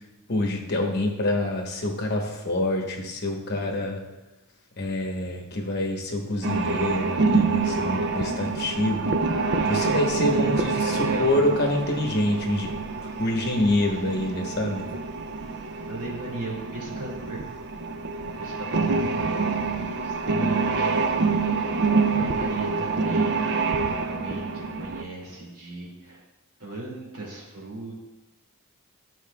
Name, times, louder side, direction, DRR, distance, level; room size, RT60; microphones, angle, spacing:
voice 1, 0.3-4.0 4.8-9.1 9.6-12.7 13.2-14.9, left 1 dB, 45° left, 1 dB, 1.0 m, -26 dB
sound 1, 6.4-25.0, right 4 dB, 50° right, 0.4 m, -26 dB
voice 2, 10.2-11.4 13.3-13.4 15.9-17.5 18.2-21.0 22.1-26.2 26.6-28.0, right 2 dB, 90° right, -3 dB, 2.1 m, -38 dB
12.5 x 4.5 x 2.3 m, 1.1 s
head